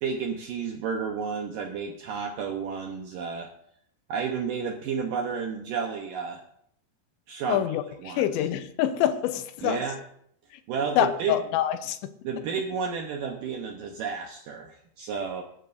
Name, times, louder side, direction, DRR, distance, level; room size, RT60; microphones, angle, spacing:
voice 1, 0.0-3.5 4.1-6.4 7.3-8.5 9.6-10.0 10.7-11.4 12.2-15.4, right 5 dB, 90° right, 3 dB, 1.9 m, -31 dB
voice 2, 7.5-9.8 11.0-12.0, left 11 dB, 85° left, 9 dB, 3.0 m, -26 dB
21.0 x 12.5 x 2.6 m, 0.69 s
omnidirectional pair, 5.3 m